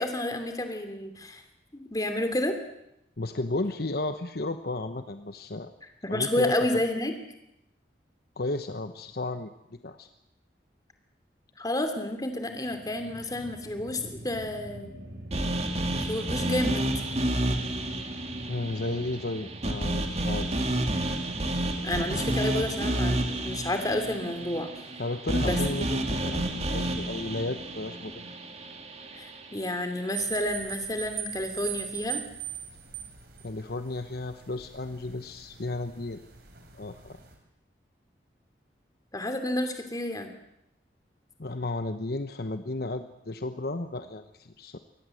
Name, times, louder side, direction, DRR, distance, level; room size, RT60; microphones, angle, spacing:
voice 1, 0.0-1.4 1.7-2.6 6.0-7.1 11.6-14.9 15.9-16.9 21.8-24.7 25.5-25.6 29.1-32.2 39.1-40.3, left 1 dB, 20° left, 7 dB, 2.8 m, -30 dB
voice 2, 3.2-5.7 6.1-6.6 8.4-10.1 18.5-20.6 25.0-28.2 33.4-36.2 36.7-37.2 41.4-44.8, left 2 dB, 60° left, 9 dB, 1.0 m, -33 dB
sound 1, 12.4-24.7, right 1 dB, 75° right, 6.7 m, -46 dB
gabber synth supa fricked, 15.3-29.5, right 1 dB, 35° right, 2.3 m, -30 dB
sound 2, 30.1-37.3, right 9 dB, 60° right, 4.3 m, -40 dB
24.0 x 18.5 x 7.8 m, 0.80 s
head